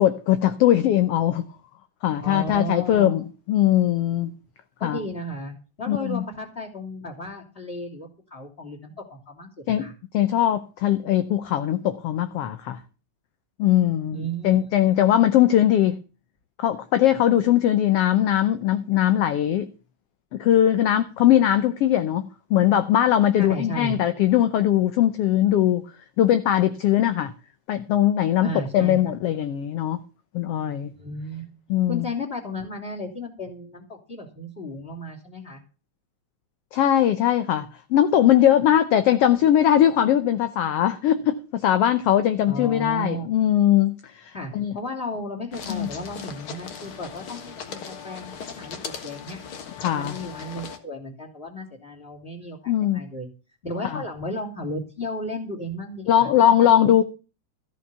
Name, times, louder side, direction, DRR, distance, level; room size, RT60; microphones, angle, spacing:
voice 1, 0.0-1.4 2.0-4.3 4.8-5.0 5.9-6.2 9.7-9.8 10.1-12.8 13.6-16.0 16.6-19.7 20.3-25.8 26.2-27.3 27.7-30.0 30.3-30.9 31.7-32.0 36.7-44.7 45.7-45.9 49.8-50.2 52.7-53.1 53.9-54.0 56.1-57.0, left 11 dB, 70° left, 1.5 m, -20 dB
voice 2, 2.2-3.2 4.8-9.9 14.1-14.6 23.4-24.0 28.4-29.0 31.0-31.5 31.9-35.6 42.5-43.3 44.3-49.4 49.9-53.3 53.6-56.9, left 1 dB, 20° left, 2.8 m, -34 dB
sound 1, 45.5-50.8, left 6 dB, 50° left, 2.0 m, -38 dB
14.0 x 7.4 x 6.8 m
omnidirectional pair, 3.5 m